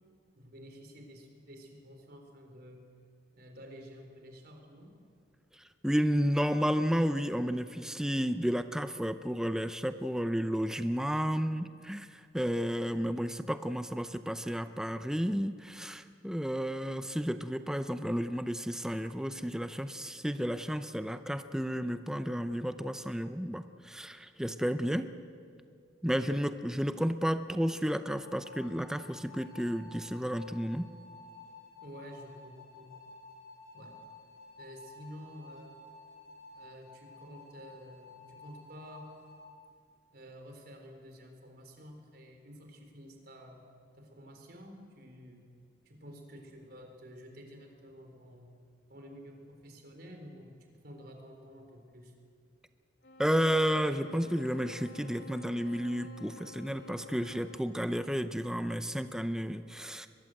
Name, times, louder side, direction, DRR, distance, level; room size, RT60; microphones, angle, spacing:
voice 1, 0.3-2.9 3.3-4.9 31.8-33.0 33.7-34.0 34.6-35.8 36.5-39.1 40.1-43.6 43.9-45.5 45.8-48.6 48.9-52.1, equal, 55° right, 4 dB, 4.0 m, -50 dB
voice 2, 5.8-25.1 26.0-30.9 53.2-60.1, equal, 5° right, 10 dB, 0.6 m, -32 dB
sound 1, 28.2-39.4, left 3 dB, 50° left, 7.1 m, -53 dB
sound 2, 53.0-57.9, left 2 dB, 75° left, 2.1 m, -52 dB
22.5 x 21.5 x 7.8 m, 2.2 s
head